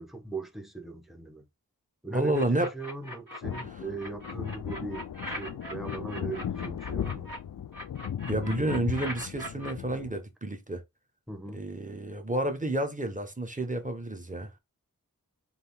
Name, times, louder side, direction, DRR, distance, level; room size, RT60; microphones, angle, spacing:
voice 1, 0.0-1.5 2.0-7.3 11.3-11.7, right 3 dB, ahead, 1.1 m, -39 dB
voice 2, 2.1-2.7 8.3-10.8 11.5-14.6, right 1 dB, 20° right, 1.4 m, -30 dB
sound 1, 2.3-3.6 4.0-7.4 7.7-9.7, equal, 60° right, 2.4 m, -40 dB
sound 2, 3.4-10.2, left 9 dB, 65° left, 0.5 m, -37 dB
4.0 x 3.0 x 3.6 m
wide cardioid pair, 55°, 36 cm